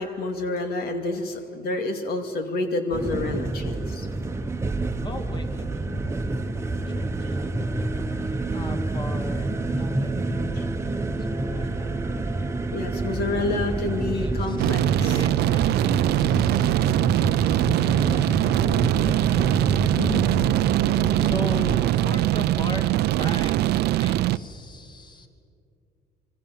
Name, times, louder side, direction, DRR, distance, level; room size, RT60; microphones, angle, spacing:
voice 1, 0.0-4.1 10.6-10.7 12.7-15.2 20.0-20.2, left 2 dB, 65° left, 6 dB, 2.4 m, -28 dB
sound 1, 2.9-21.8, right 2 dB, 15° right, 1.2 m, -28 dB
voice 2, 5.0-6.4 6.9-7.5 8.5-9.5 9.8-10.8 11.1-11.9 13.0-13.7 14.1-16.7 18.7-18.9 21.2-22.9 23.2-23.6 23.9-25.3, left 2 dB, 25° left, 6 dB, 2.6 m, -38 dB
sound 2, 14.6-24.4, right 15 dB, 75° right, 0.6 m, -22 dB
26.5 x 24.0 x 7.7 m, 2.4 s
cardioid pair, 110°, 17 cm